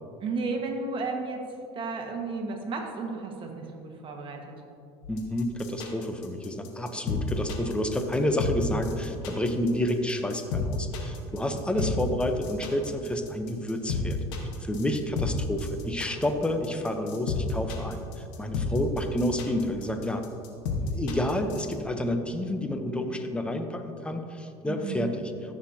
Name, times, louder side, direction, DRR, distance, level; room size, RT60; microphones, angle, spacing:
voice 1, 0.2-1.4 1.7-4.4 11.5-11.9 24.6-25.1, right 3 dB, 40° right, 2 dB, 1.6 m, -33 dB
sound 1, 5.0-21.7, left 4 dB, 85° left, 1.4 m, -32 dB
voice 2, 5.1-14.2 14.6-20.2 20.9-25.3, left 1 dB, 10° left, 6 dB, 0.8 m, -29 dB
14.5 x 6.3 x 2.8 m, 2.5 s
supercardioid pair, 100°, 13 cm